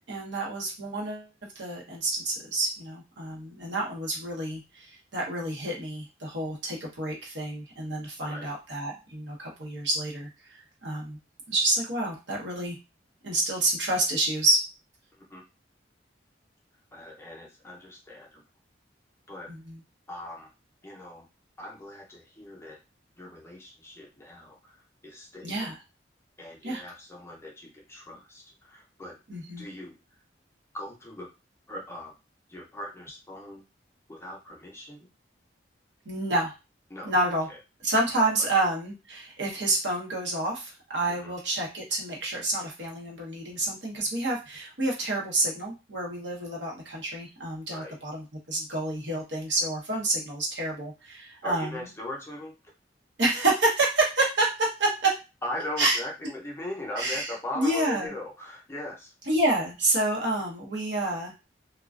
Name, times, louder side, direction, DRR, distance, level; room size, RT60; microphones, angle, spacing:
voice 1, 0.1-1.3 1.5-11.2 11.5-12.8 13.2-14.6 19.5-19.8 25.4-25.7 26.6-26.8 29.3-29.6 36.1-36.5 37.0-37.5 37.8-51.7 53.2-55.1 55.8-56.0 57.0-58.1 59.3-61.4, right 2 dB, 75° right, -2 dB, 0.8 m, -28 dB
voice 2, 16.9-18.4 19.3-19.5 20.1-20.5 20.8-21.3 21.6-22.8 23.2-25.7 26.4-29.2 29.6-30.0 30.7-31.3 31.7-32.1 32.5-33.6 34.1-35.1 36.9-37.6 38.2-38.5 41.1-41.3 47.7-48.0 51.4-52.6 55.4-59.1, left 1 dB, 15° left, -2 dB, 0.5 m, -40 dB
2.4 x 2.2 x 2.3 m, 0.27 s
head